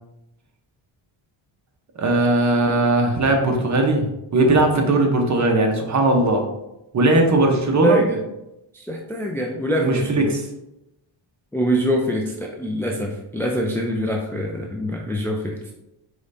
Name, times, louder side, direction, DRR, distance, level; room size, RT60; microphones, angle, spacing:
voice 1, 2.0-6.4 6.9-8.0 9.8-10.5, right 2 dB, 35° right, 3 dB, 0.9 m, -19 dB
voice 2, 7.8-8.2 8.8-10.3 11.5-15.6, right 1 dB, 5° left, 0 dB, 0.4 m, -24 dB
4.9 x 3.3 x 2.6 m, 0.90 s
cardioid pair, 90°, 49 cm